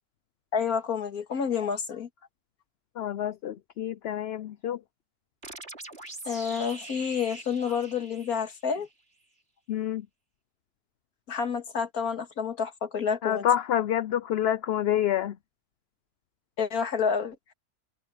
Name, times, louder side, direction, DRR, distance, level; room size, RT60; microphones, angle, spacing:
voice 1, 0.5-2.1 6.2-8.9 11.3-13.5 16.6-17.4, left 6 dB, 85° left, 2.3 m, -29 dB
voice 2, 3.0-4.8 9.7-10.1 13.2-15.4, left 10 dB, 60° left, 0.7 m, -27 dB
sound 1, 5.4-8.9, right 2 dB, 45° right, 4.0 m, -43 dB
omnidirectional pair, 1.5 m